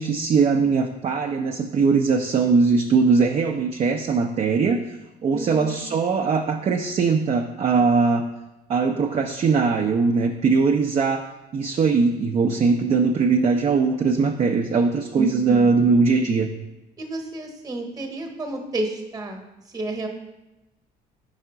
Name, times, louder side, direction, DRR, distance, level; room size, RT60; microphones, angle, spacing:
voice 1, 0.0-5.0 5.2-8.2 8.7-11.2 11.5-16.5, right 4 dB, 35° right, 3 dB, 0.4 m, -20 dB
voice 2, 5.3-5.8 15.1-15.8 17.0-19.4 19.7-20.1, right 2 dB, 20° right, 3 dB, 1.0 m, -31 dB
4.8 x 3.7 x 5.6 m, 0.99 s
cardioid pair, 110°, 17 cm